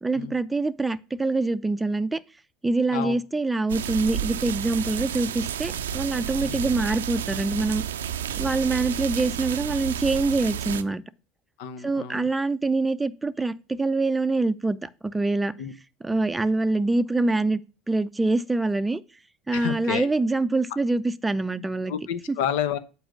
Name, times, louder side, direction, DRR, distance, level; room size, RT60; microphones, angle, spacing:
voice 1, 0.0-2.2 2.6-7.8 8.3-11.0 11.8-15.5 16.0-17.6 17.9-19.0 19.5-21.9 22.3-22.4, right 3 dB, 10° right, 0.6 m, -25 dB
sound 1, 3.7-10.8, right 9 dB, 80° right, 0.5 m, -31 dB
voice 2, 11.6-12.3 15.6-15.7 16.1-16.2 19.5-20.1 21.9-22.8, left 9 dB, 65° left, 0.9 m, -30 dB
7.9 x 4.7 x 6.2 m
figure-of-eight pair, 70°, 0 cm